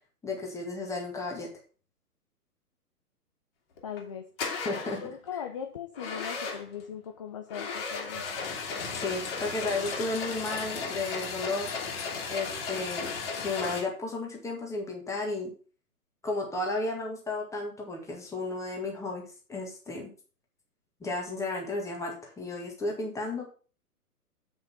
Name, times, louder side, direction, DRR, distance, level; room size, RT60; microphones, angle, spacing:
voice 1, 0.2-1.5 4.7-5.0 8.9-11.7 12.3-13.1 13.4-15.5 16.2-19.2 19.5-20.1 21.0-23.5, left 2 dB, 5° left, 0 dB, 1.9 m, -33 dB
sound 1, 3.8-4.0 4.4-5.1 5.9-6.8 7.5-13.8, left 4 dB, 40° left, 2.5 m, -35 dB
voice 2, 3.8-4.5 5.0-8.2, left 8 dB, 20° left, 4 dB, 0.5 m, -39 dB
8.0 x 5.6 x 5.6 m, 0.39 s
figure-of-eight pair, 120°, 46 cm